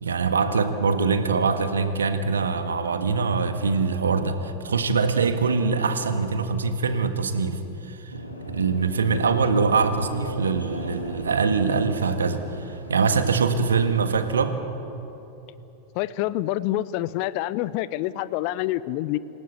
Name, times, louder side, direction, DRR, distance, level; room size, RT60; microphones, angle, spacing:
voice 1, 0.0-8.1 8.5-14.6, right 5 dB, 70° right, 9 dB, 1.6 m, -23 dB
sound 1, 8.1-14.4, equal, 85° left, 3.2 m, -37 dB
voice 2, 15.9-19.2, left 15 dB, 45° left, 17 dB, 0.7 m, -27 dB
27.5 x 17.0 x 8.4 m, 3.0 s
figure-of-eight pair, 90°, 0 cm